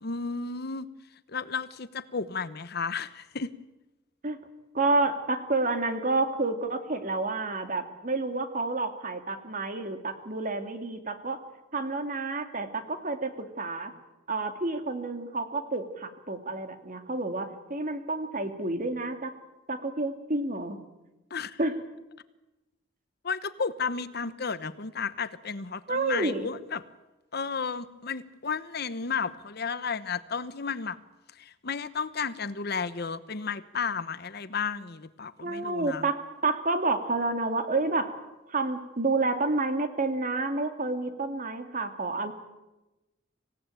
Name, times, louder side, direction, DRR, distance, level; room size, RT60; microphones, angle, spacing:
voice 1, 0.0-0.9 1.3-3.5 21.3-21.6 23.2-26.8 27.3-31.0 31.3-36.1, left 5 dB, 55° left, 14 dB, 1.0 m, -33 dB
voice 2, 4.7-11.4 11.7-13.9 14.3-19.3 19.7-20.8 21.6-21.7 25.9-26.5 35.4-38.1 38.5-42.3, right 3 dB, 45° right, 7 dB, 2.4 m, -29 dB
26.0 x 17.0 x 9.0 m, 1.0 s
head